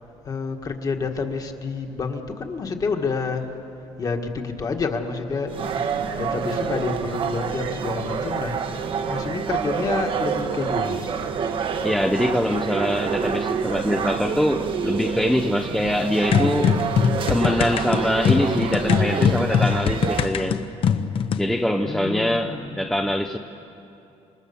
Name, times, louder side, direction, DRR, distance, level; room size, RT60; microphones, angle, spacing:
voice 1, 0.2-3.5 4.0-5.5 6.2-8.6 9.1-11.3 21.9-22.8, left 4 dB, 30° left, 4 dB, 1.7 m, -28 dB
sound 1, 5.5-20.3, right 6 dB, 45° right, 1.1 m, -27 dB
voice 2, 11.8-16.8 17.3-20.6 21.4-23.4, left 1 dB, 5° left, 3 dB, 0.6 m, -23 dB
sound 2, 16.3-21.5, left 7 dB, 50° left, 0.9 m, -22 dB
27.0 x 24.0 x 7.0 m, 2.9 s
cardioid pair, 155°, 12 cm